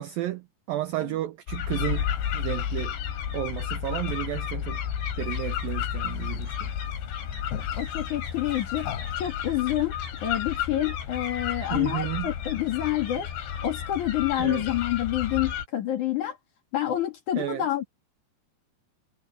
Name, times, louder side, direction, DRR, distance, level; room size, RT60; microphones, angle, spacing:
voice 1, 0.0-2.1 2.3-2.9 3.3-4.8 5.2-6.7 11.7-12.3 14.4-14.6 17.4-17.6, right 14 dB, 90° right, 2.0 m, -32 dB
sound 1, 1.5-15.7, left 9 dB, 80° left, 5.0 m, -32 dB
voice 2, 7.5-8.9 9.2-9.9 10.2-13.3 13.6-16.4 16.7-17.8, left 13 dB, 50° left, 3.0 m, -28 dB
omnidirectional pair, 5.2 m